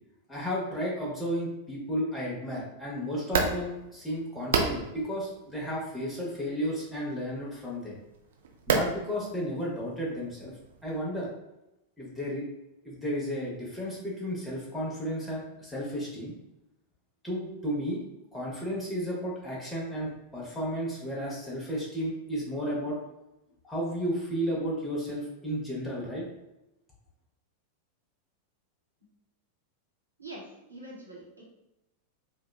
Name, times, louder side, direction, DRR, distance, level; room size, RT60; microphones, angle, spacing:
voice 1, 0.3-8.0 8.7-10.5 10.8-11.3 12.0-12.4 12.8-16.3 17.2-18.0 18.3-23.0 23.7-26.2, equal, 5° left, -6 dB, 0.7 m, -33 dB
sound 1, 3.2-11.0, right 5 dB, 60° right, 0.4 m, -34 dB
voice 2, 30.2-31.4, right 1 dB, 85° right, -4 dB, 0.9 m, -45 dB
2.8 x 2.2 x 2.2 m, 0.91 s
figure-of-eight pair, 90°, 0 cm